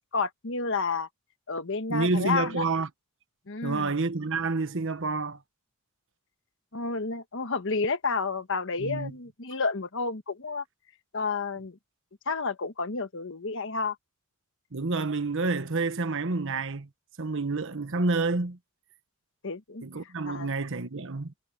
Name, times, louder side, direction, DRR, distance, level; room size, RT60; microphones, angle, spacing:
voice 1, 0.1-1.1 1.5-2.6 3.5-3.9 6.7-10.6 11.1-11.8 12.3-14.0 19.4-20.5, left 4 dB, 60° left, 1.3 m, -30 dB
voice 2, 1.9-2.9 3.6-5.4 8.8-9.1 14.7-16.9 17.2-18.6 19.8-21.3, right 3 dB, 65° right, 1.2 m, -28 dB
head